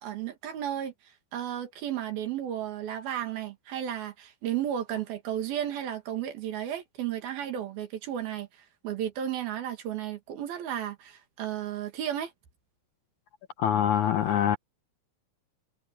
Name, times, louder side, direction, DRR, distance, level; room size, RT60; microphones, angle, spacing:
voice 1, 0.0-0.9 1.3-8.5 8.8-12.3, right 10 dB, 75° right, 3.9 m, -33 dB
voice 2, 13.6-14.6, left 9 dB, 75° left, 1.8 m, -24 dB
omnidirectional pair, 4.4 m